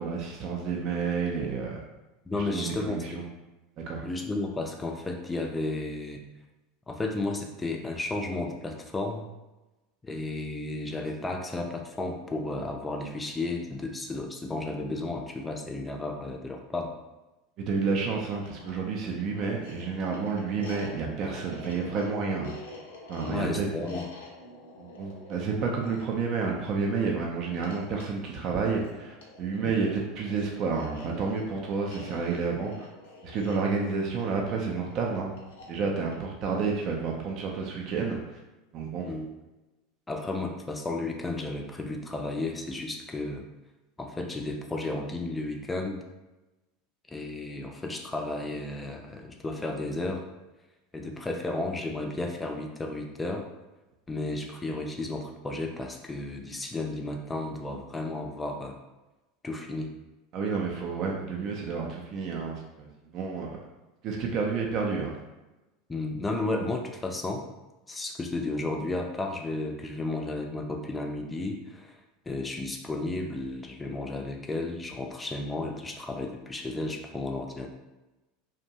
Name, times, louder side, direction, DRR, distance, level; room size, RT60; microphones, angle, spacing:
voice 1, 0.0-1.8 2.3-3.3 3.8-4.0 17.6-22.5 23.1-23.7 24.8-32.9 33.2-35.3 35.7-38.4 38.7-39.1 60.3-62.9 63.1-63.6 64.0-65.2, right 5 dB, 50° right, 0 dB, 0.4 m, -30 dB
voice 2, 2.3-3.2 4.0-6.2 6.9-9.3 10.0-16.9 23.3-24.1 29.6-29.7 39.1-39.3 40.1-43.5 44.0-46.0 47.1-50.2 50.9-53.5 54.1-58.8 59.4-59.9 65.9-67.5 67.9-72.0 72.3-77.7, left 2 dB, 15° left, 2 dB, 0.4 m, -33 dB
sound 1, 18.1-37.3, left 1 dB, 75° left, 0.6 m, -47 dB
2.5 x 2.2 x 2.8 m, 1.1 s
hypercardioid pair, 85°, 0 cm